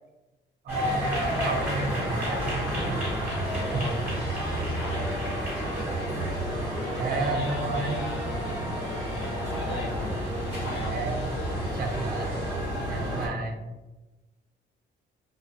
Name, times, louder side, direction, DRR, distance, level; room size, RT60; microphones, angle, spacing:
voice 1, 0.6-3.0 3.7-3.8 6.9-8.0 10.9-11.3 11.7-12.6 12.9-13.6, right 3 dB, 50° right, 2 dB, 0.4 m, -31 dB
sound 1, 0.7-13.3, equal, 10° right, 1.2 m, -30 dB
voice 2, 3.5-6.2 6.9-8.3 9.1-10.2 10.6-11.0, left 1 dB, 75° left, -2 dB, 0.8 m, -39 dB
2.5 x 2.3 x 2.5 m, 1.1 s
cardioid pair, 90°, 20 cm